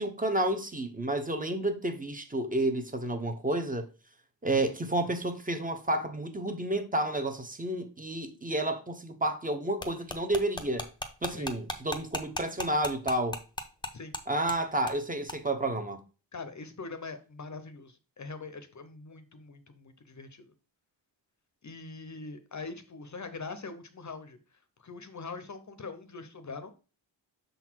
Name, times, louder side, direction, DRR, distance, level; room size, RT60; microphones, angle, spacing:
voice 1, 0.0-3.9 4.4-10.9 11.2-13.4 14.3-16.0, right 1 dB, 20° right, 0.8 m, -30 dB
sound 1, 9.8-14.2 14.5-14.6 14.9-15.0 15.3-15.4, left 1 dB, 10° left, 0.7 m, -35 dB
voice 2, 11.3-11.6 13.9-14.1 16.3-20.5 21.6-24.4 24.8-26.7, left 4 dB, 40° left, 0.7 m, -43 dB
6.6 x 4.0 x 4.5 m
wide cardioid pair, 170°, 44 cm